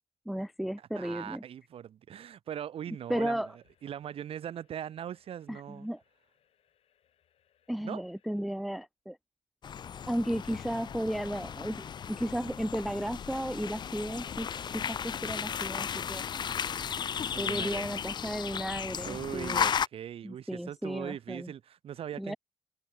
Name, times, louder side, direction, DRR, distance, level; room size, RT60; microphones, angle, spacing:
voice 1, 0.3-1.4 3.1-3.6 5.5-6.0 7.7-9.2 10.1-16.2 17.4-19.7 20.2-21.5 22.2-22.3, equal, ahead, 0.3 m, -34 dB
voice 2, 0.8-3.5 3.8-5.9 7.8-8.0 17.3-17.9 19.0-22.4, right 9 dB, 70° right, 1.7 m, -40 dB
sound 1, 2.8-8.9, left 10 dB, 80° left, 6.0 m, -73 dB
sound 2, 9.6-19.9, left 8 dB, 45° left, 0.6 m, -35 dB
cardioid pair, 120°, 10 cm